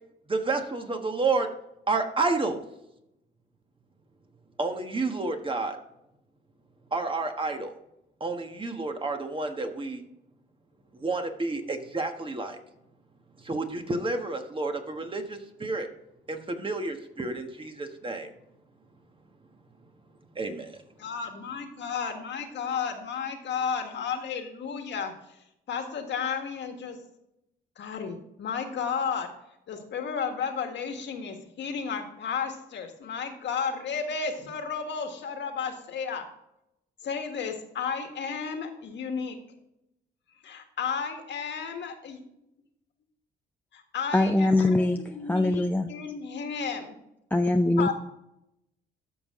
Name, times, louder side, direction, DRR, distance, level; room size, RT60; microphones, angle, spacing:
voice 1, 0.3-1.5 1.9-2.6 4.6-5.8 6.9-7.7 8.2-10.0 10.9-12.6 13.4-15.9 16.3-18.3 20.3-20.8, right 3 dB, 25° right, 5 dB, 1.4 m, -30 dB
voice 2, 21.0-25.1 25.7-27.0 27.8-29.3 29.7-36.2 37.0-39.4 40.4-42.2 43.7-44.5 45.0-45.6 45.9-47.0 47.8-47.9, left 6 dB, 65° left, 5 dB, 1.7 m, -33 dB
voice 3, 44.1-45.9 47.3-47.9, left 2 dB, 10° left, 4 dB, 0.5 m, -23 dB
13.0 x 5.5 x 3.7 m, 0.83 s
cardioid pair, 90°, 20 cm